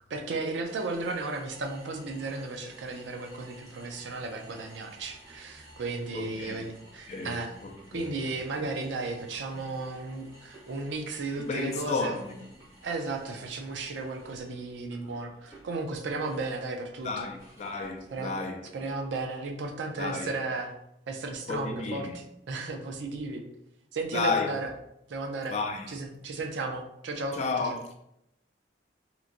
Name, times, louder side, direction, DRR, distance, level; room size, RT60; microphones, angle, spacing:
voice 1, 0.1-7.5 7.9-12.1 12.8-17.3 18.1-18.3 18.7-20.7 21.1-23.4 23.9-24.7 25.1-25.5 25.9-27.4, right 3 dB, 80° right, 0.5 m, -34 dB
sound 1, 0.6-18.4, right 1 dB, 15° right, 0.9 m, -54 dB
voice 2, 6.1-6.6 7.1-8.2 9.5-9.7 11.4-12.7 17.0-18.6 20.0-20.3 21.5-22.2 24.1-24.5 25.5-25.9 27.3-28.0, left 4 dB, 40° left, 0.3 m, -32 dB
2.9 x 2.5 x 2.5 m
head